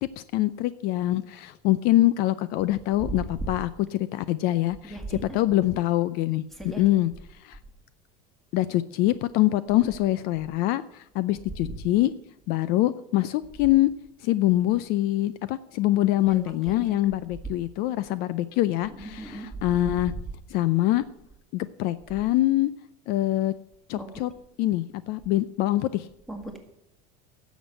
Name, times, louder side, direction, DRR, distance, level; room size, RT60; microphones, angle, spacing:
voice 1, 0.0-7.1 7.4-7.6 8.5-12.1 12.5-13.9 14.2-20.1 20.5-21.0 21.5-22.7 23.1-23.5 23.9-24.3 24.6-26.1, left 15 dB, 55° left, 16 dB, 0.5 m, -24 dB
voice 2, 4.8-5.4 6.6-6.8 16.3-17.0 18.9-19.5 24.0-24.1 26.3-26.6, right 2 dB, ahead, 4 dB, 1.9 m, -38 dB
10.0 x 7.2 x 7.7 m, 0.79 s
supercardioid pair, 140°, 19 cm